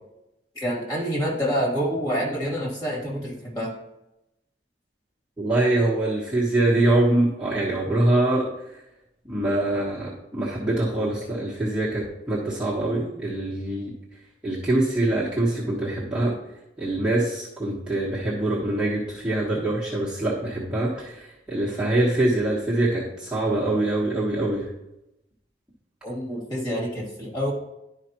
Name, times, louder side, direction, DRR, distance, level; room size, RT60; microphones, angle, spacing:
voice 1, 0.5-3.7 26.0-27.5, equal, 20° left, -4 dB, 2.6 m, -27 dB
voice 2, 5.4-8.5 9.3-13.9 14.4-16.3 16.8-24.7, right 1 dB, 5° right, -8 dB, 1.3 m, -24 dB
11.5 x 4.9 x 3.0 m, 0.89 s
head